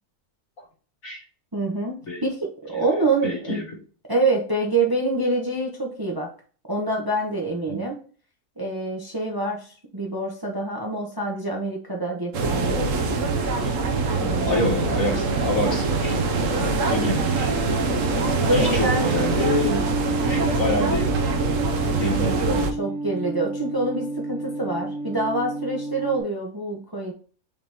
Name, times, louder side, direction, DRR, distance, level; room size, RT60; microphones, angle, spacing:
voice 1, 1.5-3.6 4.1-6.3 6.7-8.0 8.6-12.9 14.1-14.7 18.4-19.1 22.8-27.1, right 2 dB, 20° right, 0 dB, 0.7 m, -26 dB
voice 2, 3.2-3.6 7.7-7.8 14.4-16.2 16.5-17.5 18.5-19.9 20.2-21.1 22.0-22.5, left 1 dB, 70° left, -2 dB, 2.1 m, -27 dB
sound 1, 12.3-22.7, right 3 dB, 65° right, 1.0 m, -23 dB
sound 2, 19.1-26.2, right 2 dB, 55° left, 1.5 m, -31 dB
5.1 x 2.9 x 3.4 m, 0.40 s
omnidirectional pair, 1.5 m